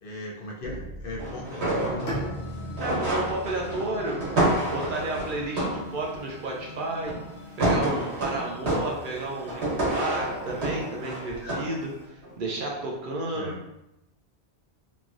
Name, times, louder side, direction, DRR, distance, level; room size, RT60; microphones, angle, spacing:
voice 1, 0.0-2.1 11.4-11.7 13.3-13.6, left 2 dB, 65° left, -3 dB, 0.7 m, -37 dB
sound 1, 0.6-2.5 2.8-6.2 7.1-7.3 7.6-11.8 12.2-12.4, right 1 dB, 85° right, 1.2 m, -29 dB
sound 2, 1.7-12.0, left 1 dB, 15° right, 0.7 m, -45 dB
Bowed string instrument, 2.1-6.0, equal, 80° left, 1.1 m, -39 dB
voice 2, 2.8-4.2 4.6-7.1 7.6-13.5, right 2 dB, 60° right, -1 dB, 0.7 m, -32 dB
3.0 x 2.4 x 2.4 m, 0.85 s
omnidirectional pair, 1.1 m